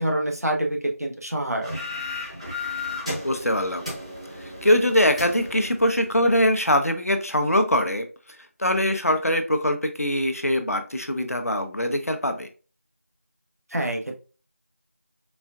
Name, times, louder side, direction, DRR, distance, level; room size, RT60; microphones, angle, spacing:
voice 1, 0.0-1.7 13.7-14.1, right 1 dB, 90° right, 1 dB, 1.1 m, -26 dB
sound 1, 1.6-6.5, left 2 dB, 25° right, 0.9 m, -34 dB
voice 2, 3.2-3.8 4.4-8.1 8.6-12.5, left 1 dB, 75° left, 7 dB, 0.7 m, -22 dB
4.2 x 3.4 x 2.3 m, 0.36 s
figure-of-eight pair, 180°, 8 cm